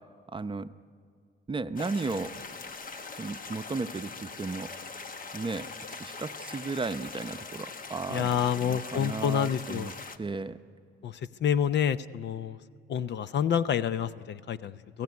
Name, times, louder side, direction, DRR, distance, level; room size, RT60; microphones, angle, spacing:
voice 1, 0.3-0.7 1.5-2.3 3.2-4.7 5.3-9.9 10.2-10.6, right 3 dB, 25° right, 10 dB, 0.7 m, -34 dB
sound 1, 1.8-10.2, left 4 dB, 45° left, 1.2 m, -42 dB
voice 2, 8.1-9.9 11.0-11.1 11.4-12.6 12.9-15.0, left 8 dB, 60° left, 14 dB, 0.7 m, -28 dB
29.0 x 15.5 x 9.5 m, 2.1 s
cardioid pair, 90°, 20 cm